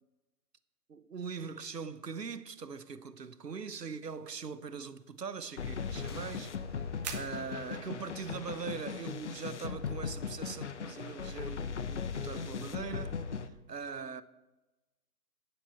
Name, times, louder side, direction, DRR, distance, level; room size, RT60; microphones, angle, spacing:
voice 1, 0.9-6.6 7.1-14.2, right 5 dB, 75° right, 1.0 m, -41 dB
sound 1, 3.5-12.0, right 7 dB, 25° right, 1.3 m, -53 dB
sound 2, 5.6-13.5, left 6 dB, 45° left, 0.8 m, -38 dB
sound 3, 5.8-9.8, left 3 dB, 15° left, 0.6 m, -54 dB
16.0 x 10.0 x 4.5 m
figure-of-eight pair, 130°, 49 cm